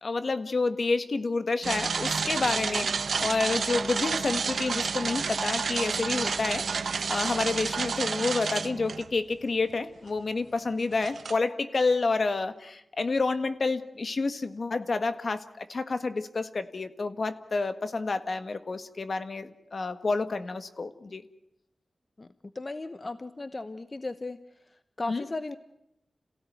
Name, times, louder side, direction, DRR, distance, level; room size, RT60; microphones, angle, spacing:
voice 1, 0.0-2.9 3.2-6.6 7.1-21.2 25.1-25.2, left 3 dB, 60° left, 11 dB, 1.5 m, -29 dB
sound 1, 1.6-9.1 9.7-9.8 10.9-11.4, right 5 dB, 85° right, 0.9 m, -30 dB
voice 2, 22.5-24.4 25.0-25.6, left 2 dB, 40° left, 12 dB, 1.0 m, -35 dB
27.5 x 16.5 x 9.3 m, 0.82 s
wide cardioid pair, 65°, 0 cm